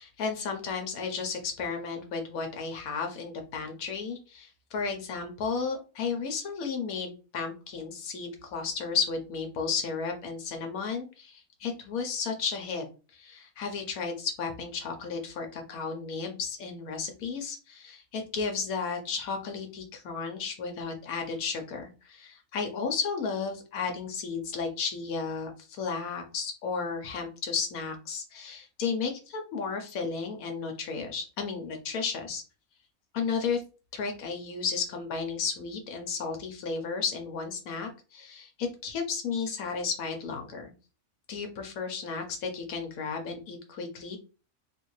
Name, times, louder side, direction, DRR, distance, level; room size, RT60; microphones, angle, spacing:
voice 1, 0.0-12.8 13.1-32.4 33.1-33.6 33.9-40.7 41.3-44.2, left 5 dB, 80° left, 4 dB, 1.2 m, -33 dB
3.3 x 2.9 x 3.1 m, 0.34 s
omnidirectional pair, 1.5 m